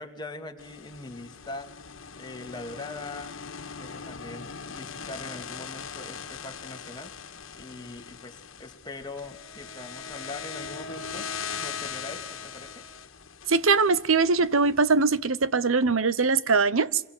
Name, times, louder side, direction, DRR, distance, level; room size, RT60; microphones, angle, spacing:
voice 1, 0.0-1.7 2.1-3.3 3.7-7.1 7.6-11.3 11.6-12.9, left 2 dB, 20° left, 2.7 m, -41 dB
sound 1, 0.6-14.8, left 6 dB, 80° left, 1.8 m, -40 dB
voice 2, 13.5-17.0, right 4 dB, 90° right, 1.0 m, -22 dB
26.0 x 23.0 x 9.6 m
head